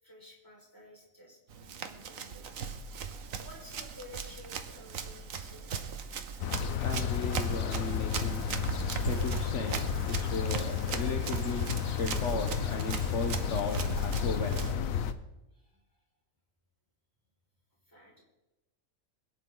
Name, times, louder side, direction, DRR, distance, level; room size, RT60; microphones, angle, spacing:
voice 1, 0.0-2.5 3.4-5.9 15.5-16.0 17.8-18.2, equal, 15° left, -2 dB, 4.9 m, -53 dB
Run, 1.5-14.7, right 6 dB, 85° right, 1.4 m, -38 dB
sound 1, 6.4-15.1, left 8 dB, 90° left, 1.2 m, -32 dB
voice 2, 6.4-8.5 9.0-15.1, left 4 dB, 60° left, 3 dB, 1.4 m, -36 dB
21.5 x 11.0 x 3.9 m, 0.96 s
omnidirectional pair, 1.4 m